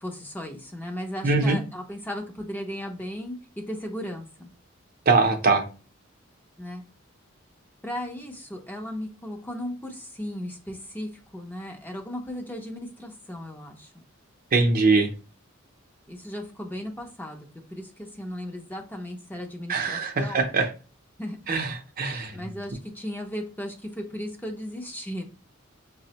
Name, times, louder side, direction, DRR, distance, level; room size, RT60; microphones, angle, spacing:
voice 1, 0.0-4.5 6.6-6.8 7.8-13.9 16.1-20.4 21.2-21.5 22.3-25.2, equal, 10° left, 2 dB, 0.5 m, -36 dB
voice 2, 1.2-1.6 5.1-5.6 14.5-15.1 19.7-20.7 21.5-22.5, right 3 dB, 45° right, 5 dB, 0.6 m, -22 dB
5.7 x 2.1 x 2.8 m, 0.34 s
head